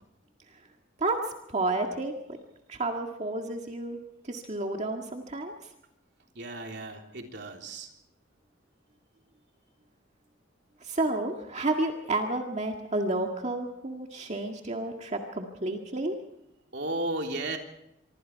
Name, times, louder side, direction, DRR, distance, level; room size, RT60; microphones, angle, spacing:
voice 1, 1.5-2.1 2.7-4.0 4.3-5.5 10.8-16.2, right 2 dB, 35° right, 2 dB, 1.9 m, -30 dB
voice 2, 6.4-7.9 16.7-17.6, right 2 dB, 60° right, 2 dB, 3.5 m, -34 dB
25.5 x 24.5 x 4.7 m, 0.81 s
head